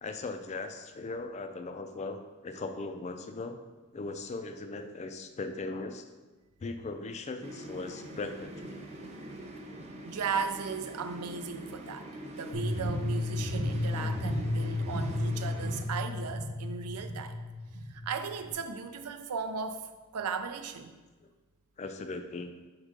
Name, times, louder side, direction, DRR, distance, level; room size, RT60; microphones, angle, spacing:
voice 1, 0.0-3.6 3.9-6.0 6.6-8.8 14.0-14.1 21.8-22.5, left 3 dB, 30° left, 7 dB, 0.3 m, -39 dB
sound 1, 7.4-15.8, right 1 dB, 30° right, 0.6 m, -44 dB
voice 2, 10.0-17.4 17.9-21.0, right 5 dB, 90° right, 8 dB, 0.5 m, -37 dB
sound 2, 12.5-18.5, left 1 dB, 85° left, 0.9 m, -33 dB
5.3 x 4.8 x 3.7 m, 1.2 s
head